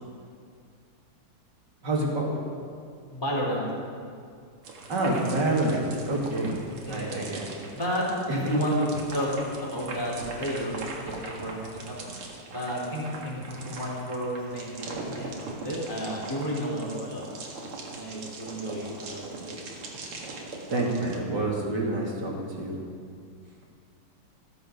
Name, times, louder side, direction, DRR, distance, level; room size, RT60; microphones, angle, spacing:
voice 1, 1.8-2.3 4.9-6.5 6.9-7.5 8.3-8.4 20.7-22.8, right 2 dB, 50° right, -2 dB, 2.9 m, -27 dB
voice 2, 3.1-3.7 6.8-7.3 7.7-11.9 12.5-17.2 17.8-19.7, equal, 10° left, -5 dB, 4.0 m, -31 dB
sound 1, 4.6-21.2, right 3 dB, 85° right, 2.7 m, -40 dB
14.5 x 14.0 x 5.4 m, 2.2 s
omnidirectional pair, 2.4 m